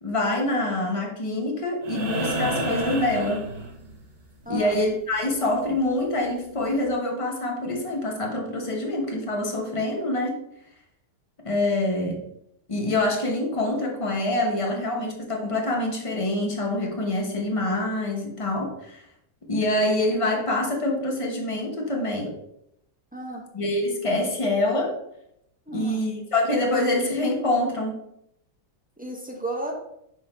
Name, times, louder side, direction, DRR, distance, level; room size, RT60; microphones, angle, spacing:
voice 1, 0.0-3.5 4.5-10.3 11.4-12.2 12.7-19.0 19.5-22.4 23.5-25.0 25.7-28.0, left 1 dB, 25° left, 1 dB, 0.9 m, -25 dB
sound 1, 1.8-4.1 6.0-6.1, right 2 dB, 35° right, 0.8 m, -29 dB
voice 2, 4.5-4.8 23.1-23.4 25.7-26.0 29.0-29.7, right 2 dB, 10° right, -1 dB, 0.4 m, -33 dB
6.0 x 3.7 x 4.3 m, 0.75 s
omnidirectional pair, 1.8 m